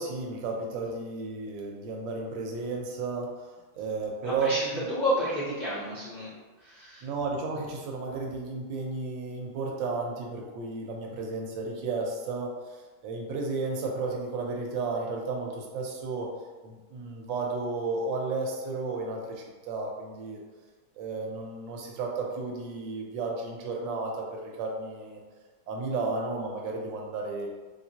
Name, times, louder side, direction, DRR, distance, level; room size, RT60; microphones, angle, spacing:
voice 1, 0.0-3.3 3.7-4.9 7.0-12.5 13.0-16.3 16.6-20.4 21.0-25.2 25.7-27.5, right 3 dB, 80° right, 0 dB, 1.3 m, -33 dB
voice 2, 4.2-6.3 6.6-7.1, equal, 45° left, -11 dB, 0.5 m, -31 dB
3.5 x 2.9 x 2.7 m, 1.3 s
omnidirectional pair, 2.0 m